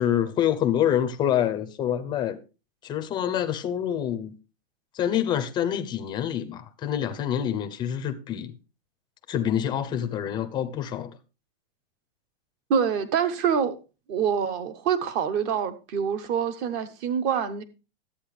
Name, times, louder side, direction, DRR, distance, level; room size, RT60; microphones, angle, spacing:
voice 1, 0.0-2.4 2.8-4.3 4.9-8.6 9.3-11.2, left 10 dB, 15° left, 0.6 m, -26 dB
voice 2, 12.7-13.8 14.1-17.6, right 7 dB, 30° right, 0.9 m, -25 dB
12.0 x 8.6 x 3.2 m
supercardioid pair, 155°, 32 cm